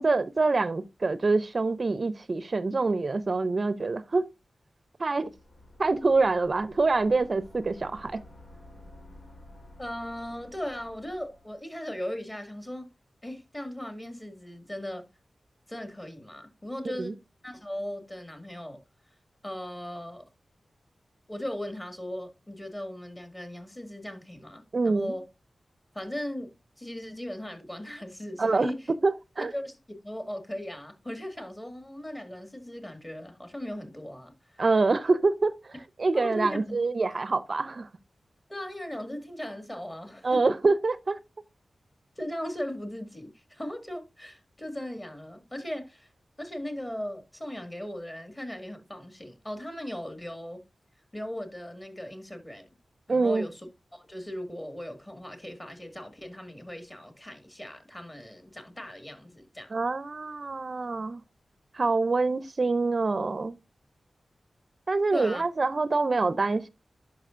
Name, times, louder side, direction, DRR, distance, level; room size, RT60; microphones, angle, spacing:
voice 1, 0.0-4.3 5.0-5.3 5.8-8.2 17.0-17.2 24.7-25.2 28.4-28.7 29.0-29.5 34.6-35.7 36.0-37.9 40.2-41.2 53.1-53.4 59.7-61.2 61.7-63.6 64.9-66.7, right 3 dB, 50° right, 0.5 m, -25 dB
sound 1, 5.2-11.6, left 1 dB, 85° left, 3.2 m, -51 dB
voice 2, 9.8-12.9 13.2-15.1 15.7-17.2 17.4-18.8 19.4-20.3 21.3-25.2 25.9-28.9 29.4-29.8 30.0-34.6 36.1-36.8 38.5-40.6 42.2-46.1 46.4-50.6 51.1-52.7 53.1-53.6 53.9-59.7 65.1-65.4, left 1 dB, 20° left, 1.9 m, -38 dB
11.0 x 5.7 x 2.5 m
wide cardioid pair, 75°, 0 cm